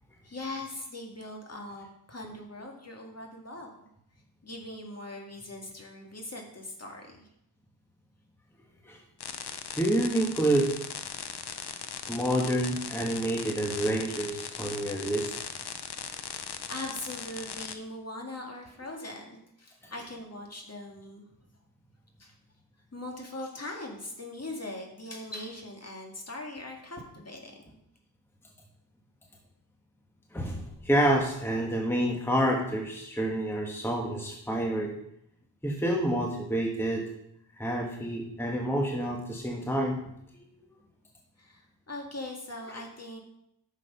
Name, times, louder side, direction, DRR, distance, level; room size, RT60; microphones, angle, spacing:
voice 1, 0.2-3.7 4.4-7.2 16.3-21.2 22.2-22.3 22.9-27.6 41.4-43.2, left 1 dB, 35° left, 1 dB, 2.0 m, -41 dB
sound 1, 9.2-17.8, left 7 dB, 65° left, 0.8 m, -39 dB
voice 2, 9.7-10.7 12.1-15.5 19.8-19.9 30.3-35.0 35.6-37.1 37.6-40.0, right 1 dB, 5° left, 0 dB, 1.2 m, -28 dB
10.0 x 6.5 x 5.5 m, 0.78 s
wide cardioid pair, 125°, 43 cm